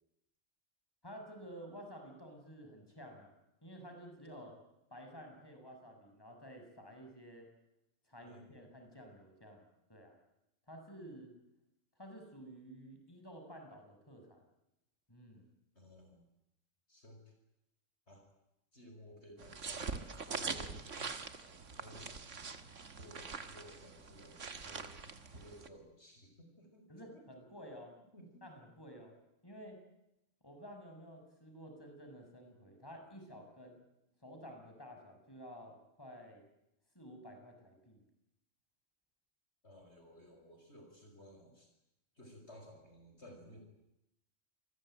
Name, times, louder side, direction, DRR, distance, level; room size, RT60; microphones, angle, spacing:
voice 1, 1.0-3.3 3.6-4.6 4.9-7.5 8.1-10.2 10.7-11.3 12.0-14.4 15.1-15.5 25.3-25.5 26.9-27.9 28.4-29.1 29.4-29.8 30.4-33.8 34.2-36.5 36.9-38.0, equal, 15° left, 3 dB, 6.7 m, -52 dB
voice 2, 15.7-16.2 16.9-17.3 18.1-18.3 18.7-21.5 21.7-22.2 23.0-25.0 25.3-27.2 28.1-28.4 39.6-41.7 42.2-43.6, equal, 55° left, 4 dB, 6.1 m, -56 dB
sound 1, 19.4-25.7, right 5 dB, 70° right, 2.1 m, -44 dB
28.0 x 21.0 x 9.1 m, 0.87 s
omnidirectional pair, 1.3 m